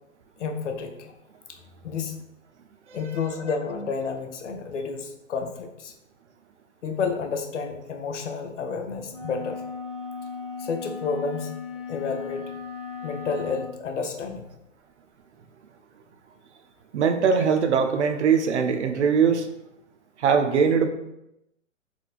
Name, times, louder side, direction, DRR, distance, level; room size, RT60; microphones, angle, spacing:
voice 1, 0.4-1.1 1.5-2.2 2.9-5.9 6.8-9.6 10.6-11.5 11.9-12.5 13.0-14.5, left 5 dB, 65° left, 5 dB, 0.7 m, -30 dB
sound 1, 9.1-13.7, left 5 dB, 10° left, 0.5 m, -37 dB
voice 2, 16.9-19.5 20.2-20.9, right 6 dB, 60° right, 6 dB, 0.7 m, -21 dB
4.4 x 3.9 x 2.4 m, 0.85 s
figure-of-eight pair, 120°, 40 cm